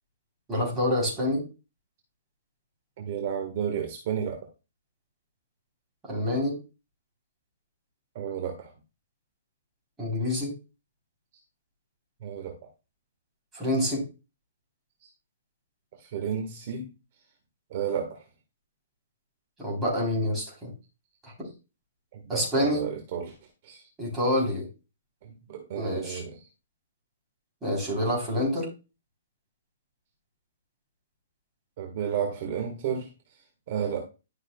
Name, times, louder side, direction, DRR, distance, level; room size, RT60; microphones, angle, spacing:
voice 1, 0.5-1.4 6.0-6.6 10.0-10.5 13.5-14.0 19.6-20.7 21.2-21.5 22.3-22.9 24.0-24.7 25.8-26.2 27.6-28.7, left 1 dB, 10° right, -3 dB, 3.7 m, -27 dB
voice 2, 3.0-4.5 8.1-8.7 12.2-12.6 16.0-16.9 17.7-18.2 22.1-23.3 23.6-23.8 25.2-26.4 31.8-33.1 33.7-34.0, right 8 dB, 40° right, 4 dB, 1.5 m, -32 dB
12.0 x 6.1 x 2.3 m, 0.29 s
hypercardioid pair, 170°, 0 cm